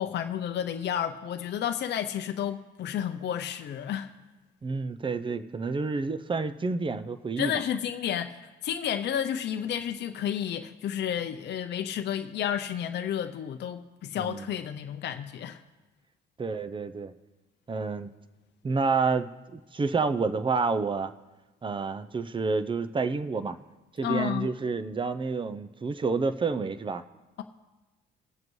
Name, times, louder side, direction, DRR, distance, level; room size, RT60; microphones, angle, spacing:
voice 1, 0.0-4.1 7.4-8.4 8.6-15.6 24.0-24.5, left 9 dB, 60° left, 7 dB, 0.6 m, -31 dB
voice 2, 4.6-7.5 14.2-14.5 16.4-17.1 17.7-18.1 18.6-21.1 21.6-23.6 24.0-27.0, right 4 dB, 25° right, 11 dB, 0.6 m, -29 dB
20.0 x 7.4 x 3.1 m, 1.1 s
cardioid pair, 90°, 20 cm